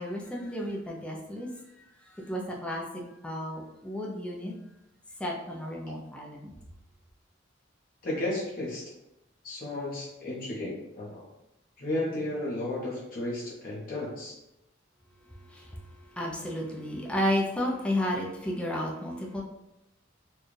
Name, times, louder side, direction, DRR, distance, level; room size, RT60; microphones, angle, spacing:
voice 1, 0.0-1.5 2.3-2.8 3.2-4.5 5.2-6.5 16.2-19.4, left 1 dB, 5° left, -2 dB, 0.5 m, -32 dB
voice 2, 8.0-8.9 9.4-11.3 11.8-14.3, left 1 dB, 50° left, -5 dB, 1.0 m, -33 dB
4.4 x 2.3 x 3.2 m, 0.89 s
head